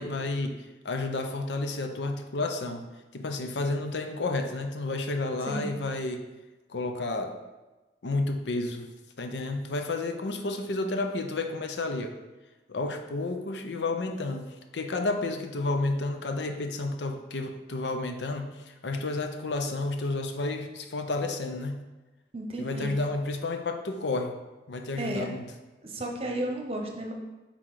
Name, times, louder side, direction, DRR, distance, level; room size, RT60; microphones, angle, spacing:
voice 1, 0.0-2.8 3.1-6.3 6.7-7.4 8.0-8.9 9.2-12.2 12.7-21.8 22.6-24.4 24.7-25.4, left 2 dB, 85° left, 5 dB, 0.6 m, -31 dB
voice 2, 22.3-22.9 25.0-25.3 25.8-27.1, right 1 dB, 35° right, 2 dB, 0.8 m, -33 dB
5.7 x 3.8 x 4.7 m, 1.1 s
head